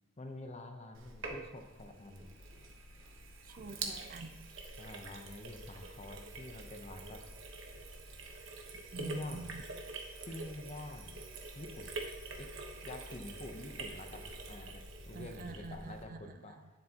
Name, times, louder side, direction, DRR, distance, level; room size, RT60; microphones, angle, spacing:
voice 1, 0.2-2.4 4.8-7.2 9.0-9.5 10.3-11.2 11.5-11.9 12.4-12.5 12.8-16.6, left 1 dB, 30° left, 5 dB, 0.8 m, -47 dB
Sink (filling or washing), 0.9-16.0, right 3 dB, 60° right, 1.2 m, -46 dB
sound 1, 2.4-16.1, left 2 dB, 80° left, 0.8 m, -55 dB
voice 2, 3.4-4.5 8.9-9.6 15.1-16.7, right 3 dB, 40° right, 9 dB, 0.5 m, -47 dB
10.0 x 7.6 x 2.9 m, 1.1 s
head